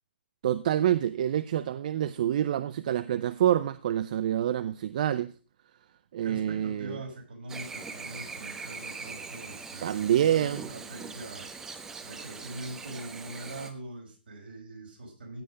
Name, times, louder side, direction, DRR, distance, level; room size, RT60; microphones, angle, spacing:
voice 1, 0.4-5.3 6.1-7.0 9.8-10.7, right 11 dB, 50° right, 0.6 m, -27 dB
voice 2, 6.2-11.5 12.0-15.4, right 2 dB, 70° right, 5.3 m, -42 dB
Chirp tweet / Buzz, 7.5-13.7, right 4 dB, 10° right, 1.0 m, -42 dB
16.0 x 5.6 x 5.1 m
hypercardioid pair, 145°, 6 cm